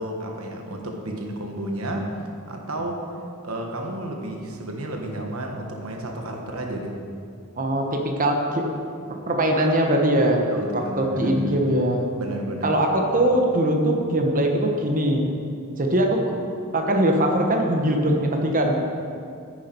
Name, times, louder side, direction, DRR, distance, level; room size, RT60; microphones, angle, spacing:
voice 1, 0.0-2.1 2.5-3.1 3.4-7.0 10.5-11.6 12.2-12.7, right 1 dB, 70° right, 2 dB, 1.4 m, -31 dB
voice 2, 7.6-8.7 9.1-10.5 10.7-12.0 12.6-15.2 15.8-16.2 16.7-18.7, right 1 dB, 40° right, 2 dB, 1.2 m, -21 dB
11.0 x 9.5 x 4.6 m, 2.4 s
head